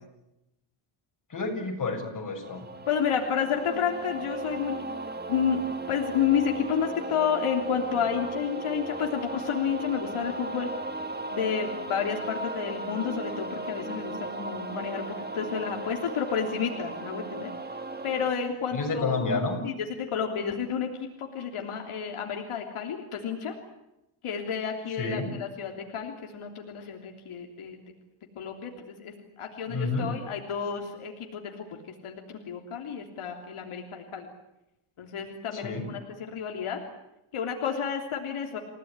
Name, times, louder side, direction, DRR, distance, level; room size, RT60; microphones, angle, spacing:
voice 1, 1.3-2.7 18.7-19.6 25.0-25.3 29.7-30.1 35.5-35.9, left 3 dB, 40° left, 2 dB, 7.1 m, -30 dB
sound 1, 2.4-18.3, right 2 dB, 20° right, 2.3 m, -36 dB
voice 2, 2.9-4.8 5.3-5.6 5.9-10.7 11.3-17.5 18.0-19.2 19.6-23.5 24.2-27.8 28.3-31.8 32.0-34.3 35.0-36.8 37.3-38.6, left 7 dB, 85° left, 2 dB, 3.3 m, -30 dB
29.0 x 17.0 x 9.8 m, 0.91 s
wide cardioid pair, 135°, 49 cm